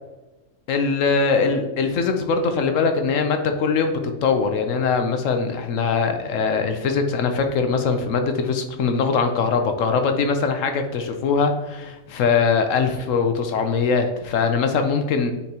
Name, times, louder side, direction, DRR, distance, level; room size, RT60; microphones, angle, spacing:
voice 1, 0.7-15.3, left 5 dB, 75° left, 6 dB, 1.0 m, -22 dB
9.4 x 4.3 x 2.8 m, 1.1 s
omnidirectional pair, 1.4 m